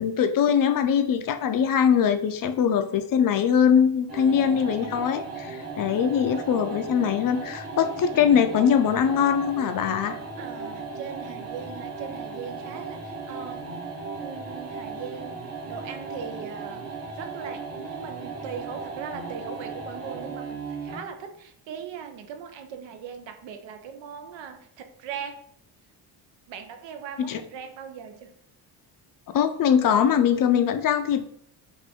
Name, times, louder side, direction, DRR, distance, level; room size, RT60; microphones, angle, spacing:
voice 1, 0.0-10.2 27.3-27.4 29.3-31.3, left 8 dB, 50° left, 9 dB, 0.5 m, -22 dB
sound 1, 4.1-21.1, right 4 dB, 35° right, 1.1 m, -36 dB
voice 2, 4.2-4.6 5.9-6.1 10.4-13.7 14.2-15.4 15.7-16.9 17.1-25.4 26.5-28.3, right 7 dB, 75° right, 6 dB, 0.8 m, -39 dB
5.2 x 2.6 x 3.5 m, 0.66 s
cardioid pair, 125°, 44 cm